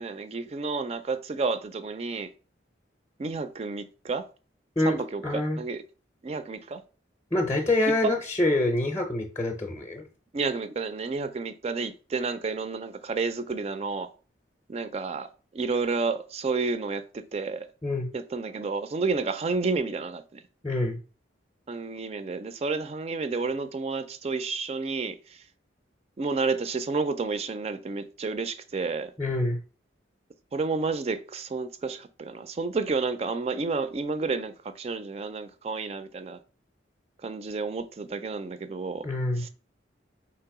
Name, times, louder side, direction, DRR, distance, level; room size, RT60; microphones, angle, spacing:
voice 1, 0.0-2.3 3.2-4.3 4.9-5.8 6.2-6.8 7.9-8.1 10.3-14.1 14.7-17.7 18.1-20.4 21.7-25.4 26.2-29.1 30.5-36.4 37.2-39.1 39.4-39.5, right 4 dB, 35° right, 0.3 m, -30 dB
voice 2, 5.2-5.6 7.3-10.0 17.8-18.1 20.6-21.0 29.2-29.6 39.0-39.4, left 1 dB, 15° left, 0.6 m, -26 dB
3.3 x 2.9 x 4.6 m
head